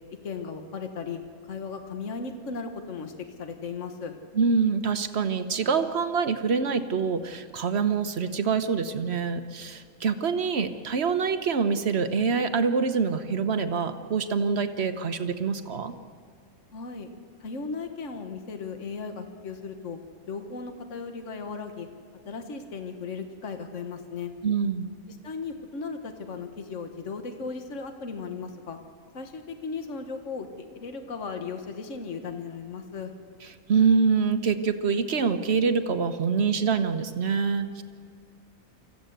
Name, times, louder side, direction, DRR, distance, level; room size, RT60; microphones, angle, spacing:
voice 1, 0.2-1.2 1.5-3.1 3.4-4.1 16.7-17.1 17.4-20.0 20.3-21.9 22.3-24.3 25.1-28.8 29.1-33.1, left 5 dB, 60° left, 6 dB, 1.8 m, -36 dB
voice 2, 4.3-15.9 24.4-24.9 33.7-37.8, right 5 dB, 50° right, 9 dB, 1.3 m, -25 dB
25.0 x 15.0 x 8.1 m, 2.2 s
omnidirectional pair, 1.5 m